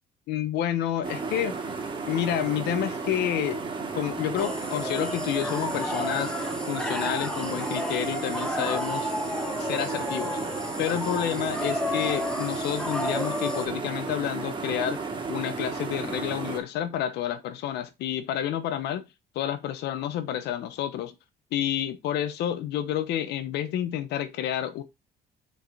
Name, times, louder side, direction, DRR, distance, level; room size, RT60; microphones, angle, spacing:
voice 1, 0.3-1.5 2.1-3.6 3.9-6.3 6.7-9.1 9.6-10.4 10.8-15.0 15.3-19.0 19.3-21.1 21.5-24.8, left 11 dB, 80° left, 0.9 m, -29 dB
sound 1, 1.0-16.6, right 4 dB, 30° right, 2.5 m, -33 dB
sound 2, 4.4-13.7, left 1 dB, 5° left, 1.1 m, -32 dB
6.7 x 4.8 x 4.0 m
cardioid pair, 110°, 17 cm